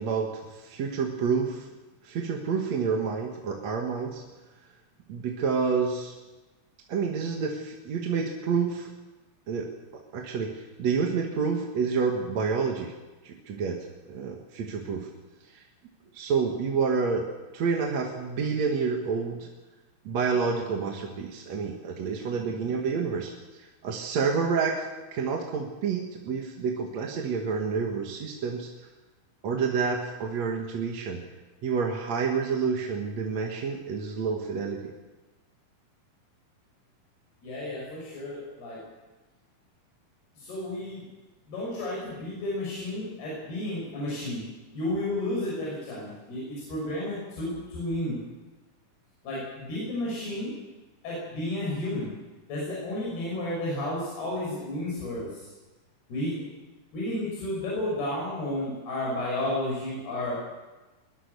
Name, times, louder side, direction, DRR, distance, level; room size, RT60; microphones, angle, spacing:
voice 1, 0.0-1.7 2.0-4.2 5.1-6.1 6.9-8.9 9.5-9.7 10.1-12.9 13.2-15.1 15.5-15.7 16.1-17.3 17.5-19.5 20.0-24.9 25.1-28.7 29.4-31.2 31.6-34.9, right 5 dB, 50° right, 1 dB, 2.6 m, -29 dB
voice 2, 37.4-38.8 40.4-41.0 41.5-44.4 44.7-48.2 49.2-50.5 51.0-52.1 52.5-55.4 56.1-56.5 56.9-60.4, left 1 dB, 85° left, -5 dB, 8.5 m, -32 dB
21.5 x 21.5 x 6.9 m, 1.2 s
omnidirectional pair, 4.5 m